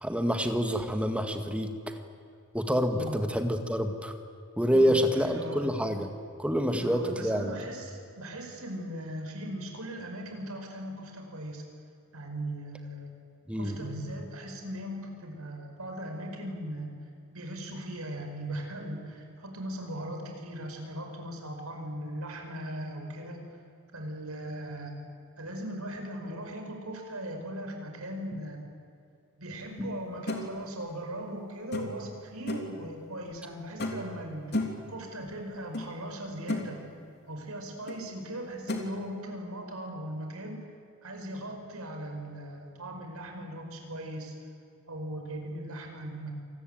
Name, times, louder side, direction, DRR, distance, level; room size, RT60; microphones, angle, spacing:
voice 1, 0.0-1.7 2.5-4.1 4.6-6.1 6.4-7.6 13.5-13.8, equal, 5° right, 6 dB, 1.8 m, -27 dB
voice 2, 4.7-5.7 6.8-11.6 12.1-13.2 13.5-16.9 17.3-23.5 23.9-28.6 29.4-36.8 37.3-40.6 41.0-44.3 44.9-46.3, right 1 dB, 75° right, 3 dB, 5.2 m, -39 dB
sound 1, 30.3-30.4 31.7-32.1 32.5-32.8 33.8-34.1 34.5-34.9 35.7-35.9 36.2-36.7 37.9-38.0 38.7-38.9, left 1 dB, 50° left, 3.2 m, -32 dB
27.5 x 20.0 x 9.1 m, 2.6 s
head